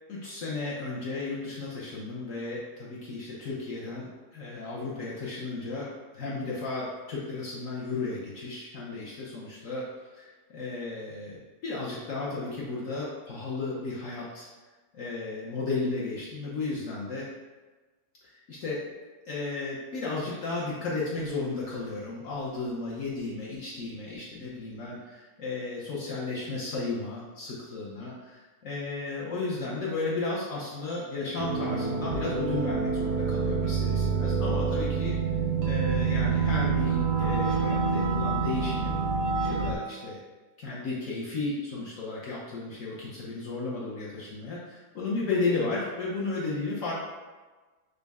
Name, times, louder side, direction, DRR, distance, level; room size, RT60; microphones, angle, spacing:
voice 1, 0.1-14.5 14.9-17.3 18.2-18.8 19.3-35.1 35.6-39.0 39.5-40.2 40.6-46.9, left 3 dB, 60° left, -6 dB, 0.9 m, -34 dB
sound 1, 31.4-39.7, right 5 dB, 65° right, 0.8 m, -27 dB
5.2 x 2.1 x 3.4 m, 1.3 s
omnidirectional pair, 1.9 m